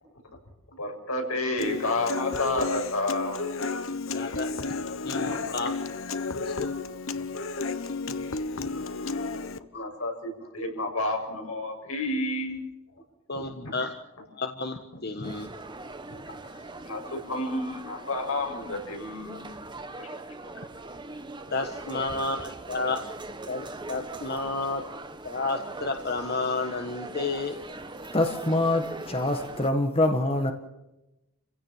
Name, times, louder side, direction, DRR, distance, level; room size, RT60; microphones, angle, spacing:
voice 1, 0.8-3.4 5.2-5.7 7.1-7.3 8.6-8.9 9.3-9.4 9.7-10.1 10.5-12.6 13.6-13.7 14.9-15.0 16.1-16.2 16.8-19.6 20.0-20.1, left 2 dB, 85° left, 2 dB, 6.9 m, -30 dB
Human voice / Acoustic guitar, 1.6-9.6, left 4 dB, 70° left, 1.1 m, -32 dB
voice 2, 4.1-4.5 5.0-6.7 13.3-13.9 14.3-15.5 21.5-23.0 23.5-24.8 25.2-27.6, left 3 dB, 50° left, 5 dB, 1.5 m, -31 dB
sound 1, 15.2-29.7, right 2 dB, 20° right, 1.4 m, -41 dB
voice 3, 28.1-30.5, left 1 dB, 25° left, 5 dB, 1.7 m, -25 dB
29.0 x 16.5 x 7.3 m, 0.94 s
head